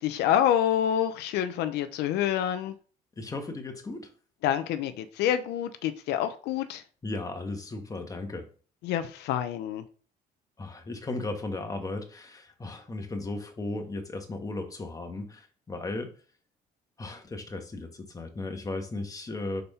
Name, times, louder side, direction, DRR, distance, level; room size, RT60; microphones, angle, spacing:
voice 1, 0.0-2.8 4.4-6.8 8.8-9.8, left 10 dB, 85° left, 0.6 m, -27 dB
voice 2, 3.2-4.1 7.0-8.5 10.6-16.1 17.0-19.6, left 2 dB, 20° left, 1.4 m, -36 dB
5.2 x 4.3 x 5.5 m
cardioid pair, 110°, 17 cm